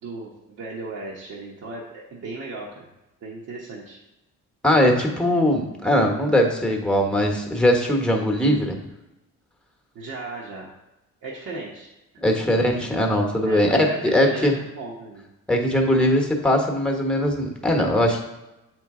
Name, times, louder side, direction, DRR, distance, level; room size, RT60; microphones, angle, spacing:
voice 1, 0.0-2.9 3.2-4.0 9.9-10.7 11.2-11.9 12.1-12.3 13.4-15.2, right 2 dB, 60° right, -4 dB, 1.1 m, -36 dB
voice 2, 4.6-8.8 12.2-14.6 15.5-18.2, left 1 dB, 5° left, 2 dB, 1.1 m, -20 dB
7.0 x 4.6 x 3.7 m, 0.98 s
cardioid pair, 90°, 30 cm